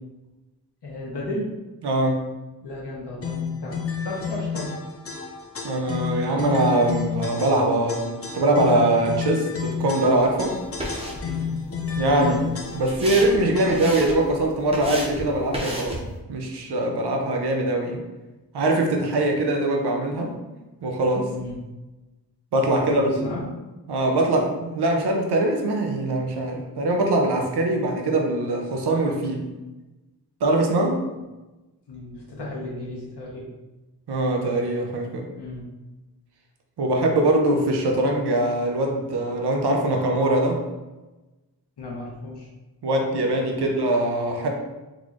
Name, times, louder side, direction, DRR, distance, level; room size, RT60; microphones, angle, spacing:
voice 1, 0.8-1.5 2.6-4.8 11.2-11.5 21.3-21.6 22.8-23.4 31.9-33.5 35.4-35.7 41.8-42.5 43.5-43.7, left 1 dB, 80° left, -4 dB, 0.9 m, -34 dB
voice 2, 1.8-2.2 5.6-8.0 8.3-10.5 12.0-12.4 12.7-16.0 16.3-18.0 18.5-20.3 20.8-21.3 22.5-23.4 23.9-29.5 30.4-31.0 34.1-35.3 36.8-40.6 42.8-44.5, right 1 dB, 75° right, 1 dB, 0.6 m, -22 dB
sound 1, 3.2-14.1, left 6 dB, 35° left, 0.5 m, -31 dB
sound 2, 10.1-16.2, equal, 15° right, 0.7 m, -35 dB
3.9 x 3.0 x 2.5 m, 1.1 s
wide cardioid pair, 90°, 40 cm